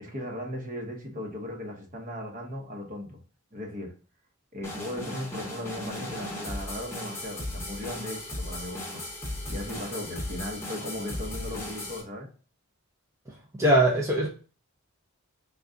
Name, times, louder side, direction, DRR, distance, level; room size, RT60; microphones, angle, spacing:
voice 1, 0.0-3.2 3.5-3.9 4.5-12.3, left 1 dB, 35° right, 1 dB, 0.8 m, -37 dB
sound 1, 4.6-12.0, left 1 dB, 10° left, 0.8 m, -36 dB
voice 2, 13.5-14.3, right 1 dB, 15° right, -3 dB, 0.5 m, -21 dB
3.6 x 2.3 x 3.7 m, 0.38 s
head